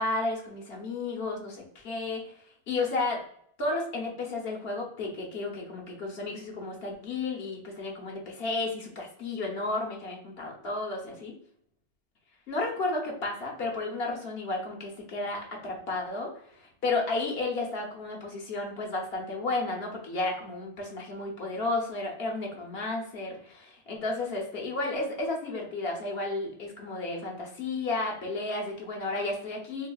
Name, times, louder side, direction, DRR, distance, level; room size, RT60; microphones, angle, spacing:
voice 1, 0.0-2.3 2.7-3.2 3.6-11.3 12.5-29.9, left 2 dB, 70° left, 0 dB, 1.0 m, -32 dB
3.7 x 2.0 x 2.3 m, 0.65 s
omnidirectional pair, 1.1 m